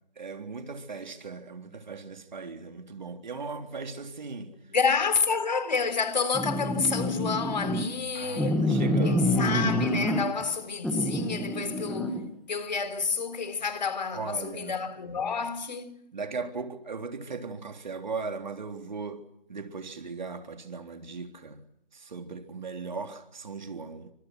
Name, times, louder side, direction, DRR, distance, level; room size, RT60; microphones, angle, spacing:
voice 1, 0.1-4.5 8.1-9.4 14.1-14.7 16.1-19.2 19.5-21.6 21.9-24.1, right 4 dB, 50° right, 3.6 m, -38 dB
voice 2, 4.6-12.2 12.5-16.0, left 5 dB, 45° left, 3.9 m, -29 dB
sound 1, 6.3-7.9 8.4-10.5 10.8-12.2, left 1 dB, ahead, 1.6 m, -27 dB
30.0 x 27.0 x 6.1 m
figure-of-eight pair, 155°, 29 cm